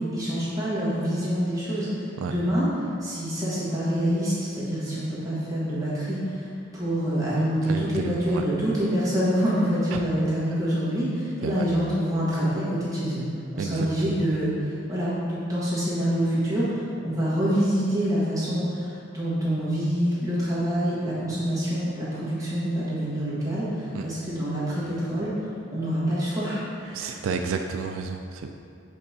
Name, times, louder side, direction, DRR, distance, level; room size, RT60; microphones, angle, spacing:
voice 1, 0.0-2.7 3.0-27.2, equal, 20° right, -10 dB, 1.5 m, -26 dB
voice 2, 7.7-8.4 9.9-10.0 11.4-11.7 13.6-14.2 23.9-24.1 26.9-28.5, right 5 dB, 80° right, 5 dB, 0.3 m, -31 dB
6.4 x 5.4 x 2.8 m, 2.5 s
head